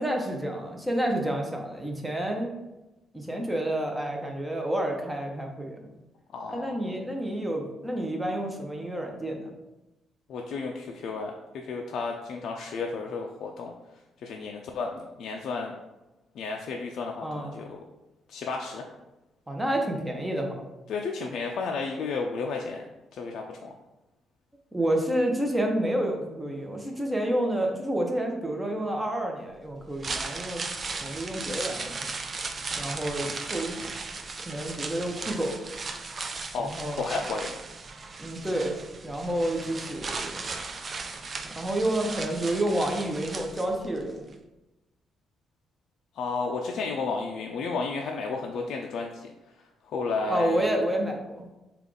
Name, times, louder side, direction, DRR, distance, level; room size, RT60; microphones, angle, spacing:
voice 1, 0.0-2.5 3.1-5.9 6.5-9.5 17.2-17.6 19.5-20.6 24.7-30.6 31.0-32.1 32.8-33.8 34.4-35.6 36.6-37.0 38.2-38.8 39.0-40.4 41.4-44.2 50.3-51.5, right 1 dB, 10° right, 1 dB, 0.7 m, -29 dB
voice 2, 6.3-6.9 10.3-13.7 14.2-15.8 16.4-17.8 18.3-18.9 20.9-22.8 23.1-23.8 36.5-37.6 46.1-49.3 49.9-50.7, left 4 dB, 70° left, 0 dB, 0.3 m, -32 dB
sound 1, 29.8-44.0 44.3-44.4, right 4 dB, 40° right, 0.4 m, -36 dB
3.4 x 2.4 x 3.7 m, 1.0 s
cardioid pair, 90°, 0 cm